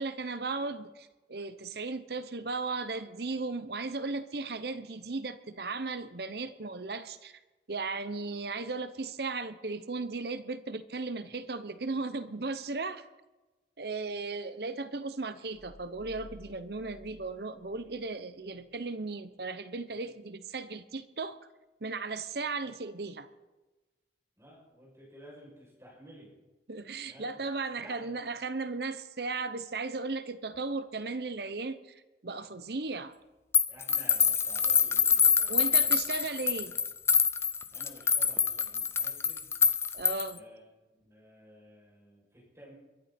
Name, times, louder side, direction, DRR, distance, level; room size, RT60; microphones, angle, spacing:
voice 1, 0.0-7.4 7.7-13.0 13.8-21.4 21.8-23.3 26.7-33.2 35.5-36.7 39.9-40.4, right 3 dB, 65° right, 0.9 m, -36 dB
sound 1, 15.5-18.1 18.4-18.5, equal, 70° left, 4.1 m, -54 dB
voice 2, 24.4-26.3 27.0-27.4 27.7-28.2 33.7-35.9 36.6-36.8 37.7-39.5 40.3-40.6 40.9-42.7, equal, 15° right, 7.1 m, -53 dB
sound 2, 33.5-40.4, left 6 dB, 15° left, 0.4 m, -26 dB
22.5 x 11.5 x 4.4 m
head